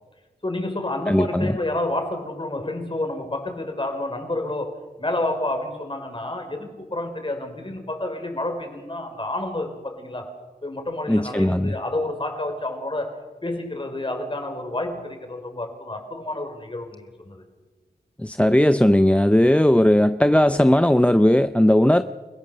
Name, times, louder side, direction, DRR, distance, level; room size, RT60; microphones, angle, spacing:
voice 1, 0.4-10.3 10.6-17.4, left 1 dB, 30° left, 5 dB, 4.6 m, -29 dB
voice 2, 1.1-1.6 11.1-11.8 18.2-22.0, left 1 dB, 10° left, 11 dB, 0.7 m, -17 dB
29.0 x 16.5 x 6.8 m, 1.3 s
wide cardioid pair, 70°, 16 cm